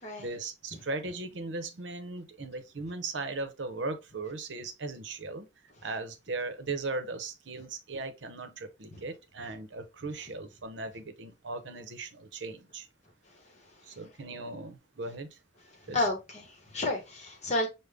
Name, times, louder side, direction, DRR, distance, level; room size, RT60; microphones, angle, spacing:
voice 1, 0.2-5.5 5.8-12.9 13.8-15.4 15.9-16.1, right 3 dB, 70° right, 0.7 m, -38 dB
voice 2, 15.8-17.7, left 2 dB, 35° left, 1.0 m, -31 dB
5.1 x 2.1 x 3.4 m
head